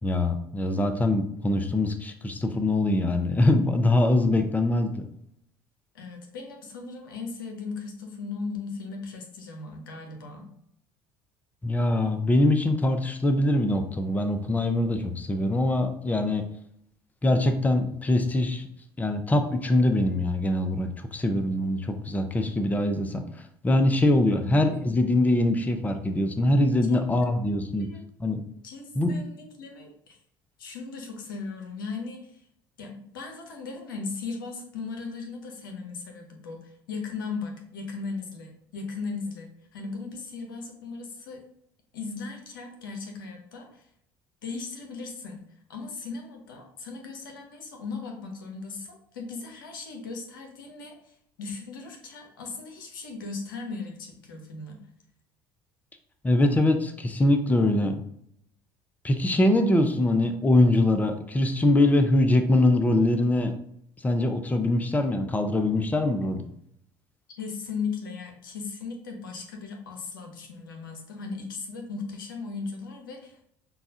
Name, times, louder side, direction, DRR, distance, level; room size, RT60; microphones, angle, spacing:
voice 1, 0.0-5.0 11.6-16.4 17.2-18.7 19.0-23.2 23.6-27.9 28.2-28.4 29.0-29.1 56.2-58.0 59.0-63.5 64.0-66.4, left 1 dB, 15° left, 7 dB, 0.5 m, -23 dB
voice 2, 5.9-10.5 24.3-24.5 26.9-27.5 27.8-28.0 28.6-30.2 30.6-32.5 32.8-41.4 41.9-43.9 44.4-45.4 45.7-54.8 67.3-73.5, left 4 dB, 85° left, 3 dB, 0.7 m, -37 dB
5.4 x 2.3 x 2.7 m, 0.70 s
hypercardioid pair, 70°, 11 cm